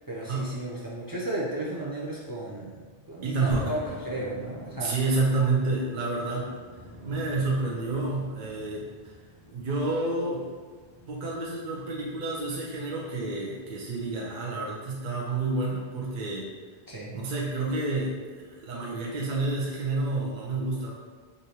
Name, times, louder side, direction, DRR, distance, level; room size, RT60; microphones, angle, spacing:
voice 1, 0.1-2.8 3.1-4.9 16.9-17.1, right 1 dB, 35° right, -5 dB, 0.3 m, -34 dB
voice 2, 3.2-3.7 4.8-6.5 7.0-9.1 9.5-10.4 11.1-16.5 17.1-20.9, right 3 dB, 55° right, -4 dB, 0.7 m, -29 dB
sound 1, 3.5-13.7, equal, 30° left, 0.8 m, -45 dB
4.9 x 2.6 x 2.8 m, 1.5 s
omnidirectional pair, 1.1 m